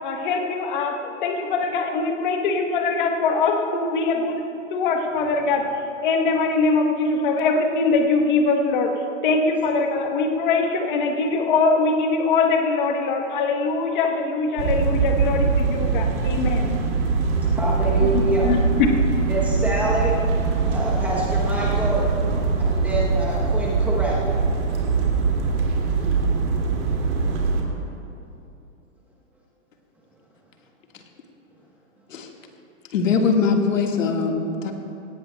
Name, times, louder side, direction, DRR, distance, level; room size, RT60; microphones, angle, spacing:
voice 1, 0.0-4.4 4.7-5.6 6.0-8.9 9.2-16.8 18.0-18.9, left 4 dB, 40° left, 3 dB, 1.1 m, -22 dB
sound 1, 14.6-27.6, right 4 dB, 60° right, 2.4 m, -22 dB
voice 2, 17.3-18.5 19.3-20.2 20.7-22.0 22.6-24.3, right 1 dB, 5° right, -5 dB, 0.9 m, -26 dB
voice 3, 32.9-34.7, left 5 dB, 80° left, 2 dB, 1.7 m, -21 dB
17.5 x 17.0 x 2.2 m, 2.7 s
hypercardioid pair, 160°, 39 cm